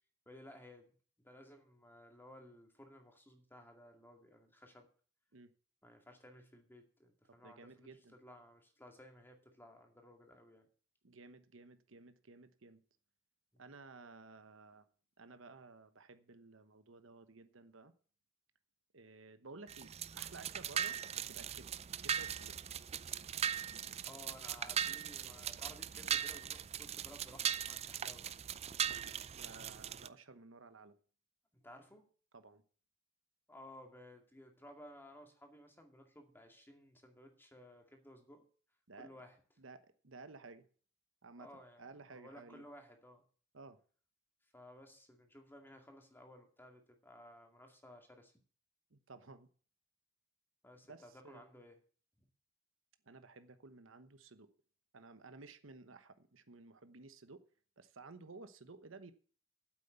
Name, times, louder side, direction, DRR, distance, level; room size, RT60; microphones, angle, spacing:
voice 1, 0.3-0.9 1.2-4.9 5.8-10.7 13.5-13.6 24.0-28.3 31.5-32.1 33.5-38.5 39.0-39.4 41.4-43.2 44.5-48.3 50.6-51.8 52.2-52.3, left 1 dB, 10° left, 4 dB, 2.2 m, -57 dB
voice 2, 7.4-8.1 11.0-12.8 13.6-14.9 15.2-17.9 18.9-22.5 28.9-30.9 32.3-32.6 38.9-39.1 39.6-40.7 41.2-41.5 41.8-42.6 43.5-43.8 48.9-49.5 50.9-51.4 53.1-54.5 54.9-57.4 57.8-59.1, right 3 dB, 70° right, 11 dB, 1.0 m, -55 dB
sound 1, 19.7-30.1, right 9 dB, 30° right, 0.4 m, -39 dB
9.2 x 8.1 x 8.0 m, 0.43 s
head